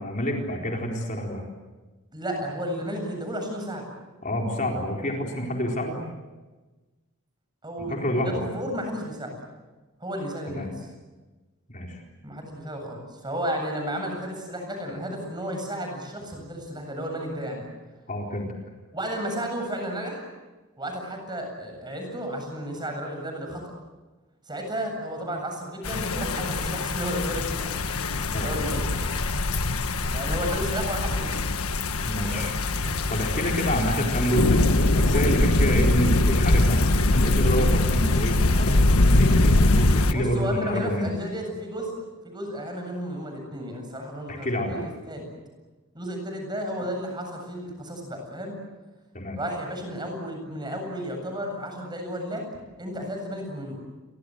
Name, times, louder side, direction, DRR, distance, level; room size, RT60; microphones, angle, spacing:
voice 1, 0.0-1.4 4.2-6.0 7.8-8.4 10.5-10.7 11.7-12.0 18.1-18.5 28.3-28.5 32.0-32.5 33.1-41.1 44.3-44.8 49.1-49.4, equal, 35° left, 0 dB, 4.3 m, -28 dB
voice 2, 2.1-3.9 7.6-9.5 10.0-10.9 12.2-17.7 18.9-20.3 20.8-23.7 24.5-27.8 28.2-29.0 30.1-31.5 32.3-32.9 40.1-41.9 42.2-45.3 45.9-48.6 49.4-53.8, equal, 20° right, 3 dB, 7.8 m, -33 dB
sound 1, 25.8-40.1, left 2 dB, 85° left, 1.4 m, -22 dB
30.0 x 24.5 x 7.9 m, 1.2 s
head